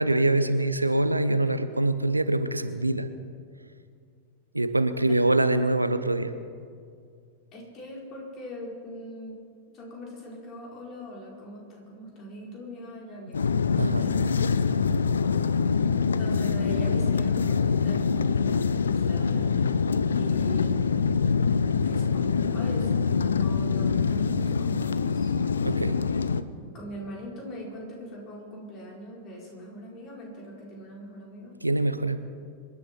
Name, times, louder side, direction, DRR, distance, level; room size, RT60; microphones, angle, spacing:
voice 1, 0.0-3.1 4.5-6.3 13.8-14.0 25.6-26.0 31.6-32.2, right 2 dB, 85° right, 11 dB, 0.8 m, -24 dB
voice 2, 7.5-14.2 16.2-19.7 20.1-21.3 21.8-25.3 26.7-31.6, equal, 35° left, -2 dB, 4.7 m, -41 dB
sound 1, 13.3-26.4, left 5 dB, 70° left, 0.6 m, -24 dB
26.0 x 11.0 x 4.6 m, 2.2 s
figure-of-eight pair, 90°, 0 cm